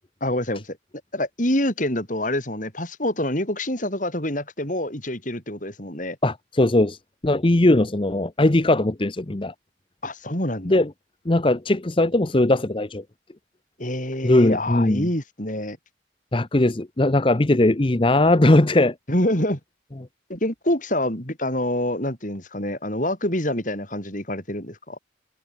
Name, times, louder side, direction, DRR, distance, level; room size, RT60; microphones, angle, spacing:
voice 1, 0.2-0.8 1.1-6.2 10.0-10.8 13.8-15.8 19.1-19.6 20.3-25.0, left 1 dB, 40° left, 6.6 m, -26 dB
voice 2, 6.2-7.0 7.2-9.5 10.6-10.9 11.3-13.0 14.2-15.1 16.3-18.9, left 1 dB, 25° left, 0.8 m, -19 dB
head